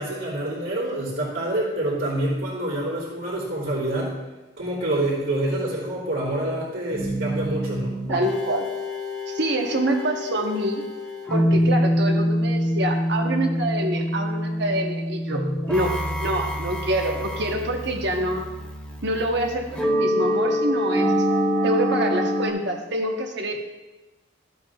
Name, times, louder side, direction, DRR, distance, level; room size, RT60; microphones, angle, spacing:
voice 1, 0.0-4.1 4.6-7.9 11.5-11.6 15.3-15.6, right 1 dB, 70° right, -7 dB, 2.9 m, -27 dB
sound 1, 6.9-22.5, equal, 5° left, 1.0 m, -25 dB
voice 2, 8.1-8.7 9.3-10.8 11.3-18.5 19.0-21.1 21.6-23.5, right 1 dB, 55° right, 3 dB, 1.1 m, -26 dB
14.0 x 7.6 x 2.4 m, 1.2 s
head